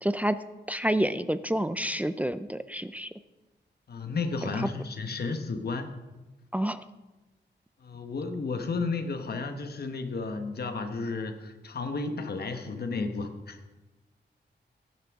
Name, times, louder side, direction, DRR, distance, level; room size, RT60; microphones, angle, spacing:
voice 1, 0.0-0.4 0.7-3.1 4.5-4.7 6.5-6.9, right 1 dB, 10° right, 12 dB, 0.3 m, -28 dB
voice 2, 3.9-5.9 7.8-13.6, left 4 dB, 60° left, 6 dB, 1.1 m, -33 dB
17.0 x 10.5 x 3.6 m, 1.1 s
wide cardioid pair, 180°, 18 cm